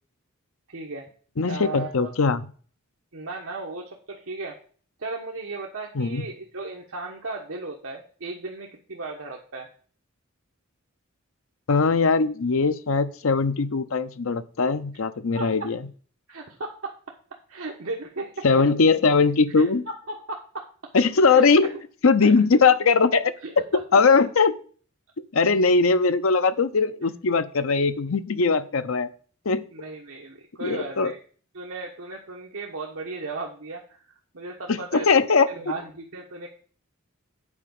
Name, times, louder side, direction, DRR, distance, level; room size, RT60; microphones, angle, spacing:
voice 1, 0.7-1.0 1.5-2.1 3.1-4.6 5.0-9.7 15.3-15.7 16.3-16.9 17.5-18.4 19.6-19.7 20.1-20.7 21.3-21.5 22.2-22.3 23.4-23.5 29.7-31.2 31.5-34.0 34.3-35.1 35.5-36.5, right 3 dB, 70° right, 1.2 m, -35 dB
voice 2, 1.4-2.5 5.9-6.2 11.7-15.8 18.4-19.8 20.9-21.7 22.0-23.3 23.7-24.5 25.3-29.1 29.5-29.7 30.6-31.1 34.7-35.5, left 4 dB, 70° left, 0.7 m, -20 dB
8.7 x 4.8 x 7.0 m
head